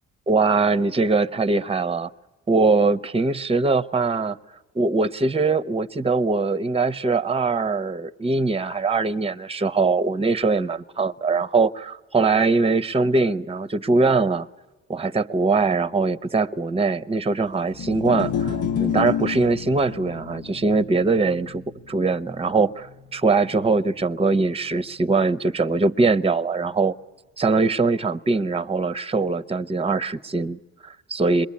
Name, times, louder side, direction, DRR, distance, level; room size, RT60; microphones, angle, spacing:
voice 1, 0.3-2.1 2.5-4.4 4.7-14.5 14.9-26.9 27.4-31.5, right 3 dB, 20° right, 14 dB, 0.8 m, -22 dB
sound 1, 17.7-24.0, left 8 dB, 75° left, 1.3 m, -30 dB
27.5 x 22.0 x 8.6 m, 1.1 s
cardioid pair, 90°, 30 cm